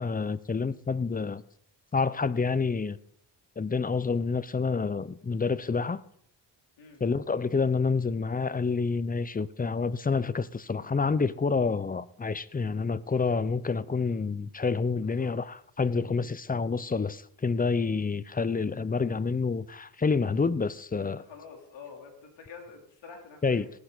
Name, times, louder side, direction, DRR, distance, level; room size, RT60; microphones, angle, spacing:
voice 1, 0.0-1.4 1.9-3.0 3.6-6.0 7.0-15.5 15.8-21.2 23.4-23.7, left 4 dB, 20° left, 0.7 m, -28 dB
voice 2, 21.0-23.7, left 5 dB, 65° left, 3.7 m, -47 dB
18.0 x 10.0 x 4.1 m
supercardioid pair, 65°, 46 cm